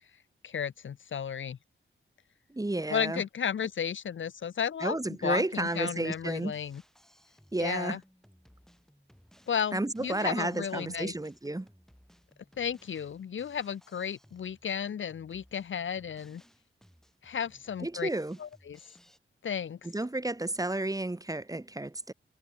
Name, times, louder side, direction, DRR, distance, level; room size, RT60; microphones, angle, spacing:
voice 1, 0.4-1.6 2.9-5.0 5.2-6.8 7.6-8.0 9.5-11.1 12.6-16.4 17.2-18.1 18.4-18.8 19.4-19.8, left 8 dB, 70° left, 0.7 m, -33 dB
voice 2, 2.5-3.2 4.8-6.5 7.5-8.0 9.7-11.7 17.8-18.4 19.8-22.1, right 2 dB, 15° right, 2.3 m, -32 dB
Drum kit, 5.6-19.2, equal, ahead, 6.7 m, -62 dB
wide cardioid pair, 95°, 21 cm